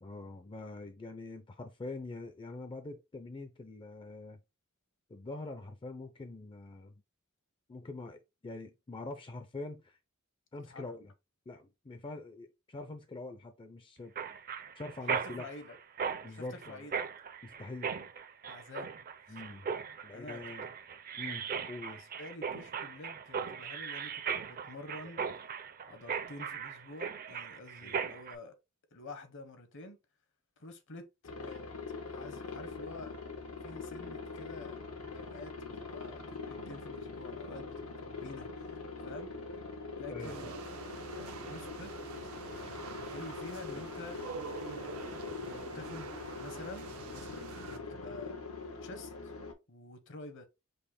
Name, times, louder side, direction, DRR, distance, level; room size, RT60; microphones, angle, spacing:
voice 1, 0.0-4.4 5.1-6.9 7.7-10.0 10.5-11.1 11.5-14.1 14.7-15.5 16.2-16.9 17.4-17.9 19.3-19.7 20.0-20.7 21.2-22.0 27.8-28.0 40.1-40.5, left 2 dB, 25° left, 0.4 m, -44 dB
Mechanisms, 14.2-28.4, right 6 dB, 40° right, 0.5 m, -38 dB
voice 2, 15.1-15.8 16.3-17.0 18.5-18.9 19.3-19.4 20.1-20.8 21.5-25.3 25.8-28.6 28.9-30.0 30.6-31.6 32.1-33.1 33.6-34.8 35.1-38.5 39.0-39.3 40.0-40.5 41.1-41.9 42.6-44.2 44.7-48.4 48.8-49.3 49.7-50.5, left 2 dB, 60° left, 0.9 m, -49 dB
Aircraft, 31.2-49.5, left 4 dB, 90° left, 1.0 m, -43 dB
sound 1, 40.2-47.8, right 5 dB, 90° right, 0.6 m, -46 dB
5.3 x 2.1 x 4.1 m
head